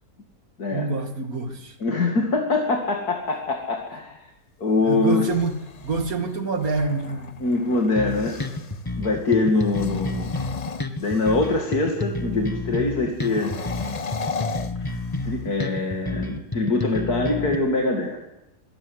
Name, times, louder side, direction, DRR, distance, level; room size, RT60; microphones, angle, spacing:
voice 1, 0.7-1.8 4.8-7.3, right 4 dB, 60° right, 7 dB, 2.7 m, -26 dB
voice 2, 1.8-4.2 4.6-5.3 7.4-8.4 9.0-10.3 11.0-13.5 14.8-18.2, left 3 dB, 70° left, 1 dB, 2.9 m, -23 dB
sound 1, 5.1-8.8 9.6-11.6 13.2-15.5, left 5 dB, 35° left, 0.7 m, -36 dB
sound 2, 8.0-17.6, left 2 dB, 15° left, 1.5 m, -30 dB
25.5 x 18.0 x 8.1 m, 0.92 s
omnidirectional pair, 1.7 m